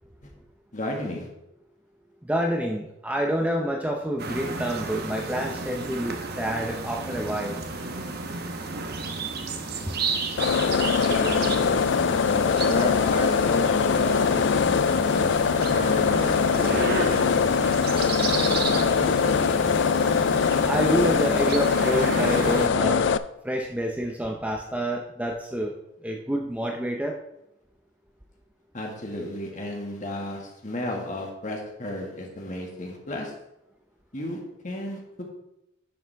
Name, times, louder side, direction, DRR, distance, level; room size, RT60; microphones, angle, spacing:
voice 1, 0.7-1.3 9.8-9.9 10.8-15.4 15.7-16.2 16.5-17.6 18.4-19.7 28.7-33.3 34.1-35.2, left 1 dB, 40° left, 1 dB, 1.8 m, -33 dB
voice 2, 2.2-7.6 9.9-10.0 20.6-23.1 23.4-25.7 26.0-27.2, right 1 dB, 5° right, 1 dB, 0.6 m, -28 dB
sound 1, 4.2-22.7, right 3 dB, 50° right, 0.9 m, -32 dB
sound 2, 10.4-23.2, left 6 dB, 60° left, 0.3 m, -22 dB
10.5 x 7.1 x 3.4 m, 0.86 s
head